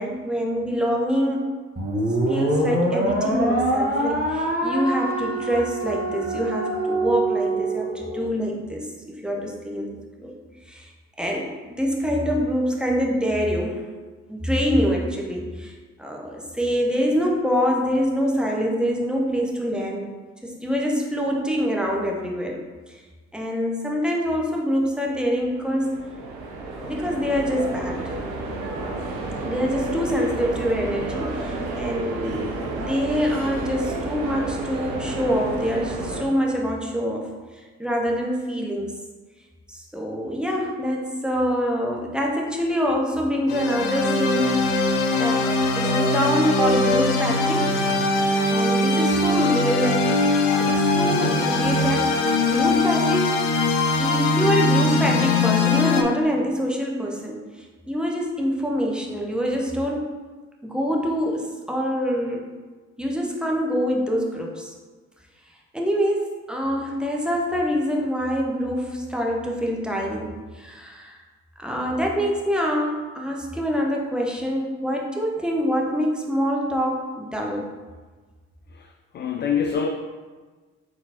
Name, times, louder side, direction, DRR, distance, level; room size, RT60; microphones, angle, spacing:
voice 1, 0.0-1.4 2.3-10.3 10.7-10.9 11.2-13.9 14.3-15.7 16.0-20.1 20.4-23.0 23.3-26.0 26.7-28.2 29.4-37.3 37.6-39.0 39.7-44.8 45.2-45.4 45.7-47.9 48.5-50.1 50.6-53.5 54.0-60.1 60.6-62.4 63.0-64.7 65.7-71.2 71.6-77.7, equal, ahead, -1 dB, 0.9 m, -25 dB
sound 1, 1.8-8.3, right 1 dB, 25° right, 1.2 m, -24 dB
sound 2, 25.4-36.2, right 2 dB, 65° right, 0.8 m, -31 dB
sound 3, 43.5-56.0, left 2 dB, 75° left, 0.7 m, -21 dB
voice 2, 78.7-79.9, left 7 dB, 30° left, 4 dB, 0.3 m, -26 dB
4.6 x 3.7 x 2.9 m, 1.4 s
hypercardioid pair, 50°, 40 cm